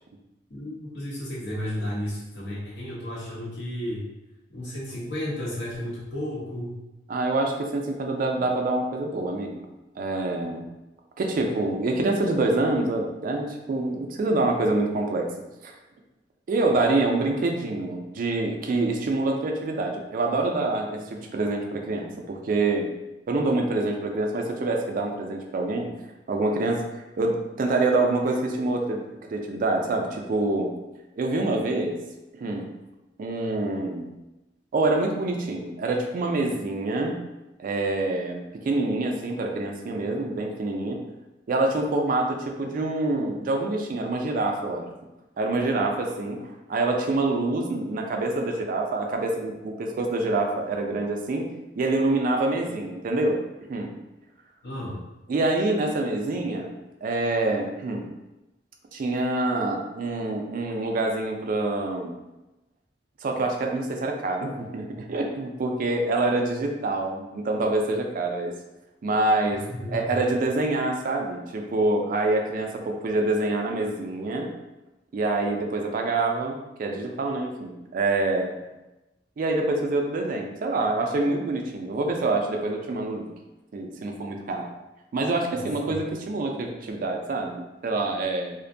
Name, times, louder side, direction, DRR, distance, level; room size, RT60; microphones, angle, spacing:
voice 1, 0.5-4.1 4.5-6.8 54.6-55.0 69.7-70.2 85.5-86.0, left 1 dB, 65° left, -6 dB, 0.8 m, -33 dB
voice 2, 7.1-9.7 10.0-10.6 11.2-15.3 15.6-15.7 16.5-22.9 23.3-25.9 26.3-30.7 31.2-32.0 32.3-32.7 33.2-34.1 34.7-37.2 37.6-41.0 41.5-44.9 45.4-51.5 51.8-53.4 53.7-53.9 55.3-56.7 57.0-58.0 58.9-62.1 63.2-68.5 69.0-74.5 75.1-78.5 79.4-83.3 83.7-84.7 85.1-88.5, right 2 dB, 50° right, 2 dB, 0.3 m, -26 dB
2.5 x 2.1 x 2.5 m, 1.0 s
head